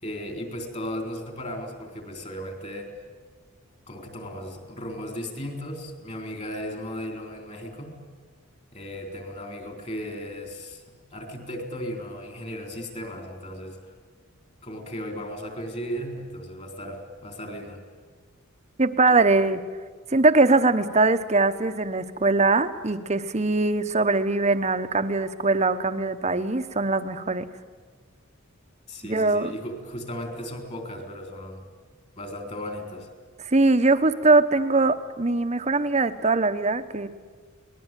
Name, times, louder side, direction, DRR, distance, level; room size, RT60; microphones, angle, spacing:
voice 1, 0.0-2.9 3.9-8.0 8.7-10.8 11.1-13.8 14.6-17.8 28.9-31.6 32.2-33.1, equal, 30° left, 4 dB, 3.9 m, -36 dB
voice 2, 18.8-19.6 20.1-27.5 29.0-29.5 33.4-37.1, right 3 dB, 30° right, 10 dB, 1.0 m, -21 dB
24.0 x 19.5 x 9.1 m, 1.5 s
head